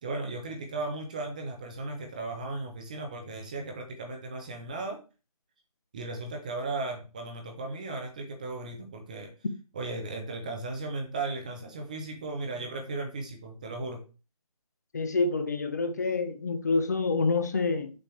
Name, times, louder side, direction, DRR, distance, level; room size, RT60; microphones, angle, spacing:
voice 1, 0.0-5.0 5.9-9.3 9.7-14.0, right 3 dB, 10° right, 0.6 m, -36 dB
voice 2, 14.9-17.9, left 3 dB, 25° left, 0.7 m, -27 dB
6.9 x 6.4 x 3.2 m
figure-of-eight pair, 160°, 20 cm